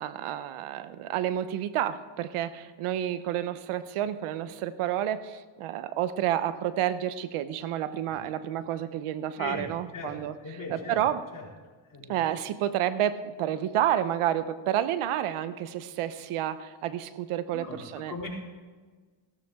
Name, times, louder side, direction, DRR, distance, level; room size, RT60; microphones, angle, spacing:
voice 1, 0.0-11.2 12.1-18.1, right 11 dB, 85° right, 13 dB, 0.8 m, -30 dB
voice 2, 10.4-11.0 11.3-11.4 11.9-12.2 17.5-18.3, left 3 dB, 40° left, -3 dB, 4.3 m, -38 dB
16.0 x 13.0 x 3.6 m, 1.4 s
cardioid pair, 75°, 50 cm